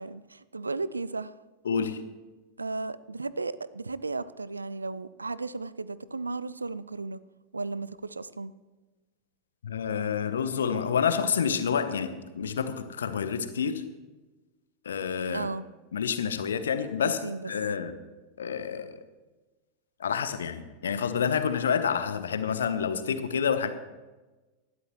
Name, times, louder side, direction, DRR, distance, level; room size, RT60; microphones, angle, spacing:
voice 1, 0.0-1.3 2.6-7.2 7.5-8.5 15.3-15.7 17.2-17.5, right 3 dB, 80° right, 18 dB, 0.4 m, -35 dB
voice 2, 1.6-2.0 9.6-13.8 14.8-15.5 15.9-17.2 17.5-17.9 18.4-19.0 20.0-23.7, left 7 dB, 65° left, 11 dB, 1.0 m, -28 dB
19.0 x 13.0 x 3.1 m, 1.2 s
figure-of-eight pair, 90°, 0 cm